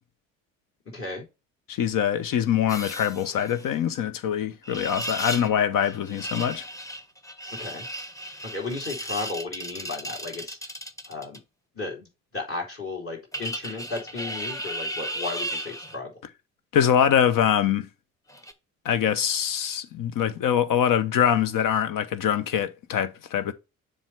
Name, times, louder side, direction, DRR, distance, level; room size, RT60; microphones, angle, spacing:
voice 1, 0.9-1.3 7.6-7.9 8.4-10.6 11.1-11.4 11.7-12.1 12.3-16.1, left 3 dB, 35° left, 3.6 m, -34 dB
voice 2, 1.7-6.6 16.7-17.9 18.8-23.5, left 9 dB, 55° left, 0.9 m, -24 dB
sound 1, 2.7-3.7 4.6-5.5 5.8-11.4 13.3-16.0 18.3-18.5, equal, 10° left, 1.1 m, -35 dB
7.3 x 5.0 x 3.3 m
hypercardioid pair, 45°, 40 cm